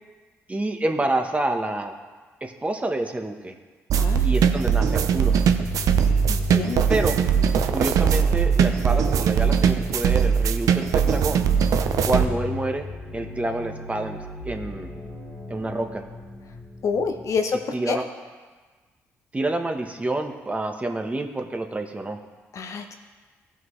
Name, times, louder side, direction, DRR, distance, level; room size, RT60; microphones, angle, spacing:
voice 1, 0.5-1.9 2.4-3.5 4.2-5.3 6.9-7.2 7.7-11.5 12.1-12.9 13.1-14.2 14.4-15.0 15.5-16.0 17.7-18.0 19.3-22.2, right 2 dB, 20° right, 4 dB, 1.1 m, -28 dB
sound 1, 3.9-12.2, right 7 dB, 70° right, 0.5 m, -20 dB
sound 2, 5.4-17.4, left 3 dB, 35° left, 2.1 m, -37 dB
voice 2, 6.3-6.9 16.8-17.6 17.9-18.0 22.5-23.0, left 5 dB, 60° left, 5 dB, 0.9 m, -27 dB
15.5 x 5.8 x 3.2 m, 1.4 s
supercardioid pair, 55°, 6 cm